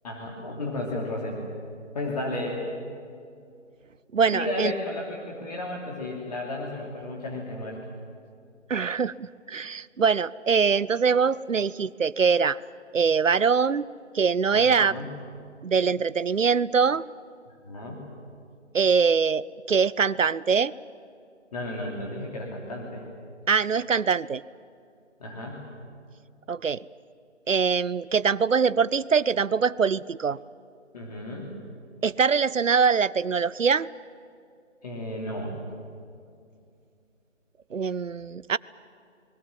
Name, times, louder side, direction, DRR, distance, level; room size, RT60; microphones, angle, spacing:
voice 1, 0.0-1.4 1.9-2.6 4.3-7.8 14.5-15.2 17.6-18.1 21.5-23.1 25.2-25.7 30.9-31.5 34.8-35.6, left 1 dB, 30° left, -2 dB, 3.1 m, -33 dB
voice 2, 4.1-4.7 8.7-12.6 12.9-13.9 14.1-14.9 15.6-17.0 18.7-20.7 23.5-24.4 26.5-26.8 27.5-30.4 32.0-33.9 37.7-38.6, right 6 dB, 85° right, 20 dB, 0.7 m, -23 dB
29.0 x 21.0 x 7.5 m, 2.4 s
figure-of-eight pair, 160°, 37 cm